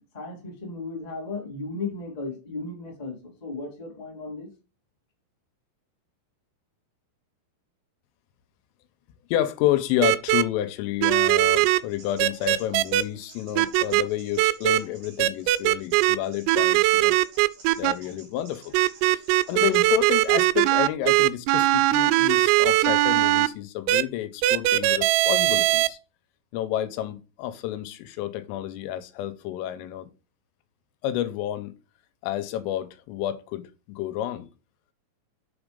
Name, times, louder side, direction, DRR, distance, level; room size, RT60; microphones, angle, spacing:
voice 1, 0.0-4.5, left 3 dB, 20° left, 1.0 m, -35 dB
voice 2, 9.3-17.2 17.8-18.8 19.0-19.2 19.5-26.0 26.5-30.1 31.0-31.7 32.2-34.5, left 13 dB, 85° left, 3.3 m, -30 dB
sound 1, 10.0-10.4 11.0-11.8 12.2-13.0 13.6-14.0 14.4-14.8 15.2-16.2 16.5-17.9 18.7-23.5 23.9-24.0 24.4-25.9, right 17 dB, 90° right, 3.2 m, -20 dB
sound 2, 11.3-20.5, right 4 dB, 55° right, 4.4 m, -51 dB
6.8 x 6.1 x 5.0 m
omnidirectional pair, 5.8 m